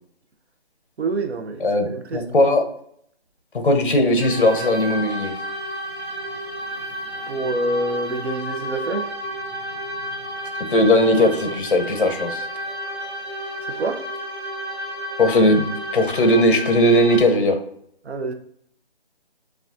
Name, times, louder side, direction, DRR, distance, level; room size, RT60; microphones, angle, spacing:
voice 1, 1.0-2.2 7.3-9.1 13.7-14.0 18.0-18.3, right 2 dB, 85° right, 0.8 m, -26 dB
voice 2, 1.6-2.6 3.5-5.3 10.7-12.5 15.2-15.6 15.9-17.6, left 1 dB, 55° left, 0.8 m, -18 dB
sound 1, 4.2-17.2, equal, 20° left, 1.7 m, -31 dB
6.4 x 2.4 x 2.5 m
hypercardioid pair, 170°, 32 cm